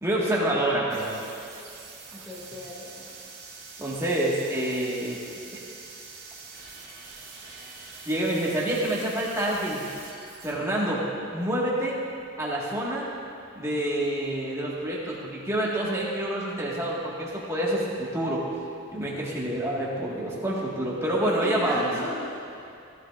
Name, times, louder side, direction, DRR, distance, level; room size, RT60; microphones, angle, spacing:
voice 1, 0.0-1.2 3.8-5.2 8.0-9.9 10.4-11.0 11.3-11.9 12.4-13.1 13.5-18.4 18.9-21.9, right 1 dB, 15° right, -6 dB, 1.7 m, -27 dB
sound 1, 0.9-10.5, right 4 dB, 50° right, 2.7 m, -45 dB
voice 2, 2.1-3.1 21.2-22.4, equal, 10° left, -11 dB, 2.3 m, -36 dB
16.0 x 11.5 x 2.5 m, 2.5 s
head